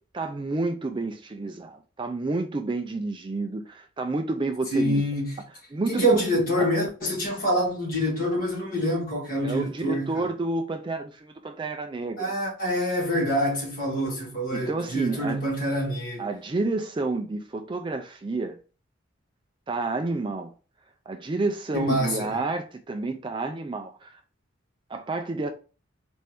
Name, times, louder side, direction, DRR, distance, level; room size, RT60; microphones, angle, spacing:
voice 1, 0.1-5.0 5.7-6.2 9.4-12.3 14.5-15.4 16.2-18.6 19.7-20.5 21.1-24.2 24.9-25.5, right 3 dB, 25° right, 0.3 m, -29 dB
voice 2, 4.7-5.4 5.9-10.1 12.2-16.3 21.7-22.3, equal, 45° left, 2.0 m, -26 dB
4.3 x 2.6 x 3.4 m
head